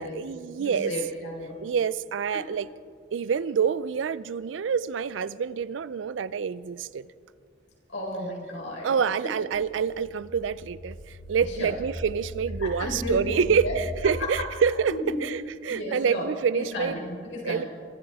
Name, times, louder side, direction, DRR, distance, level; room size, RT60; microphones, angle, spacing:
voice 1, 0.0-0.9 1.6-2.7 3.1-7.1 8.8-17.0 17.4-17.6, right 6 dB, 85° right, 18 dB, 0.4 m, -27 dB
voice 2, 0.6-1.6 2.3-2.4 7.9-8.9 11.6-11.7 12.6-13.7 14.0-14.1 14.9-15.2 15.7-16.3 16.5-17.7, left 1 dB, 85° left, -3 dB, 4.4 m, -33 dB
sound 1, 9.4-14.2, equal, 30° left, 4.0 m, -39 dB
24.0 x 13.0 x 3.6 m, 2.2 s
head